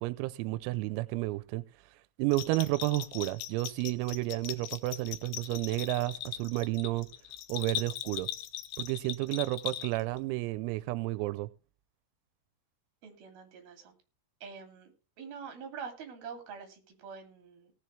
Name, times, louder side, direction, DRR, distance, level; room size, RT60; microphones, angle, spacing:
voice 1, 0.0-1.6 2.2-7.1 7.5-8.3 8.8-11.5, right 19 dB, 90° right, 3.4 m, -31 dB
Bell, 2.3-10.2, left 12 dB, 75° left, 2.7 m, -40 dB
voice 2, 13.0-13.9 14.4-17.7, right 6 dB, 50° right, 4.0 m, -46 dB
18.5 x 7.4 x 3.3 m
omnidirectional pair, 6.0 m